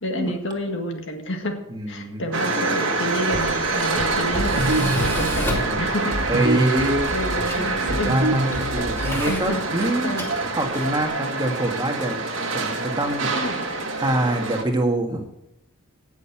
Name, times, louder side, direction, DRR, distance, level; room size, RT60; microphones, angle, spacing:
voice 1, 0.0-1.6 1.9-6.2 7.1-8.2 8.8-8.9 9.3-9.8 10.0-10.3 13.3-13.6, left 1 dB, 55° left, 4 dB, 1.8 m, -29 dB
voice 2, 1.7-2.2 5.5-5.9 6.3-7.1 7.5-10.2 10.5-12.2 12.5-15.3, right 1 dB, 20° right, 3 dB, 1.6 m, -25 dB
sound 1, 2.3-14.6, right 3 dB, 55° right, 1.7 m, -26 dB
Tools, 3.1-11.1, left 1 dB, 10° left, 2.3 m, -33 dB
sound 2, 4.3-9.6, right 1 dB, 85° right, 1.7 m, -27 dB
17.5 x 6.6 x 5.8 m, 0.81 s
head